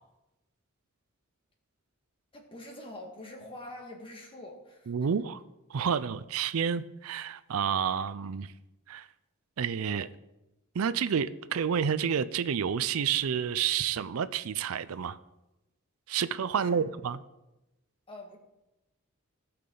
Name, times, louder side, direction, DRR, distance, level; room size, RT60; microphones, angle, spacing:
voice 1, 2.3-4.9 16.6-16.9 18.1-18.4, left 1 dB, 25° left, 1 dB, 1.8 m, -45 dB
voice 2, 4.9-5.4 5.7-8.5 8.9-9.1 9.6-10.1 10.7-15.2 16.1-17.2, right 7 dB, 80° right, 15 dB, 0.4 m, -29 dB
17.5 x 5.9 x 3.9 m, 0.97 s
head